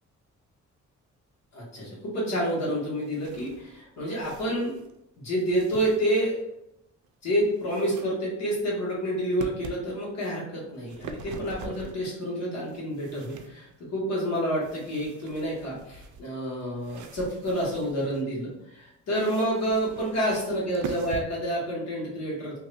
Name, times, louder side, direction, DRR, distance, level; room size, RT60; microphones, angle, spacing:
voice 1, 1.5-4.7 5.2-6.4 7.2-22.6, equal, 65° left, -5 dB, 1.5 m, -29 dB
sound 1, 2.8-5.0 5.4-6.5 7.0-8.1 8.4-8.9 9.4-9.8 10.6-12.1 12.6-13.8 14.5-18.2 19.1-21.2, right 5 dB, 80° right, 0.4 m, -44 dB
2.8 x 2.5 x 3.2 m, 0.81 s
wide cardioid pair, 170°, 29 cm